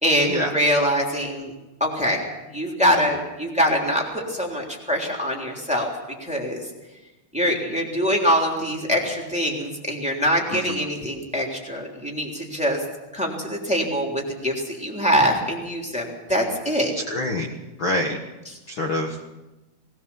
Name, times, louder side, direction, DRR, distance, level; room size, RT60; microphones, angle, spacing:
voice 1, 0.0-1.5 1.8-2.2 2.5-5.9 6.2-6.6 7.3-12.8 13.1-16.9 18.5-18.6, equal, ahead, -1 dB, 3.0 m, -23 dB
voice 2, 17.1-17.5 17.8-18.2 18.7-19.2, left 1 dB, 45° left, 2 dB, 2.0 m, -25 dB
20.0 x 18.5 x 7.1 m, 1.1 s
omnidirectional pair, 3.5 m